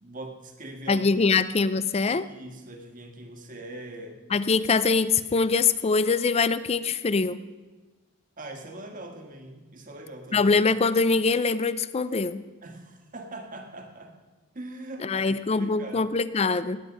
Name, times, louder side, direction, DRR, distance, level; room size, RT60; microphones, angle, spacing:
voice 1, 0.0-1.3 2.0-4.2 8.4-10.5 12.6-14.1 14.5-16.0, right 1 dB, 35° right, 4 dB, 1.6 m, -42 dB
voice 2, 0.9-2.2 4.3-7.4 10.3-12.4 15.0-16.8, left 4 dB, 30° left, 15 dB, 0.4 m, -23 dB
18.5 x 9.3 x 5.2 m, 1.2 s
head